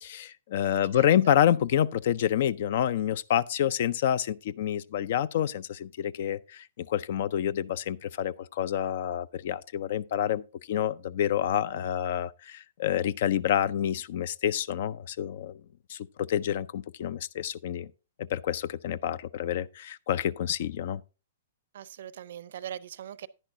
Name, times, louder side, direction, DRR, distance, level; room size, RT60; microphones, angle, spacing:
voice 1, 0.0-15.6 15.9-17.9 18.2-21.0, left 10 dB, 60° left, 0.4 m, -28 dB
voice 2, 0.9-1.3 21.7-23.3, right 10 dB, 65° right, 0.5 m, -41 dB
10.0 x 10.0 x 2.6 m
hypercardioid pair, 125°, 0 cm